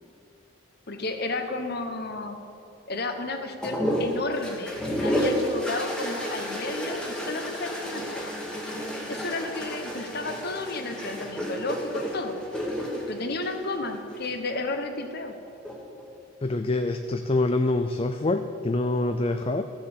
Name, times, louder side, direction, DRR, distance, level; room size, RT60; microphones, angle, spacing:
voice 1, 0.9-2.4 2.9-8.3 9.1-12.4 13.1-15.4, left 2 dB, 50° left, 6 dB, 1.2 m, -32 dB
sound 1, 3.6-14.3 15.5-16.0, equal, 5° left, 1.5 m, -31 dB
voice 2, 16.4-19.6, left 2 dB, 25° left, 7 dB, 0.4 m, -25 dB
14.5 x 7.5 x 7.2 m, 2.6 s
head